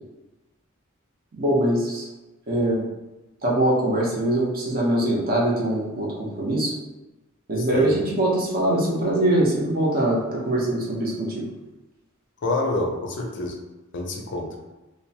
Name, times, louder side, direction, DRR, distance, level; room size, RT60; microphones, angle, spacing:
voice 1, 1.4-2.1 2.5-2.8 3.4-6.7 7.5-11.4, right 1 dB, 45° right, -4 dB, 0.7 m, -22 dB
voice 2, 12.4-13.6 13.9-14.5, left 2 dB, 60° left, 1 dB, 0.4 m, -27 dB
2.7 x 2.1 x 2.7 m, 1.1 s
head